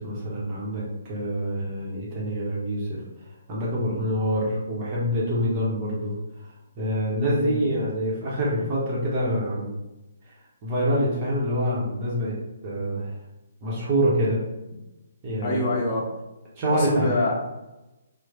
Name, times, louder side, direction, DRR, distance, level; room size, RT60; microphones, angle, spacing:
voice 1, 0.0-3.0 3.5-6.5 6.8-9.8 10.3-10.4 10.6-12.4 12.6-13.2 13.6-14.4 15.2-15.8 16.5-17.1, equal, 30° right, -6 dB, 1.0 m, -26 dB
voice 2, 7.3-7.6 15.4-16.0 16.7-17.3, left 2 dB, 30° left, -3 dB, 0.9 m, -25 dB
3.0 x 2.2 x 3.8 m, 1.0 s
figure-of-eight pair, 135°, 0 cm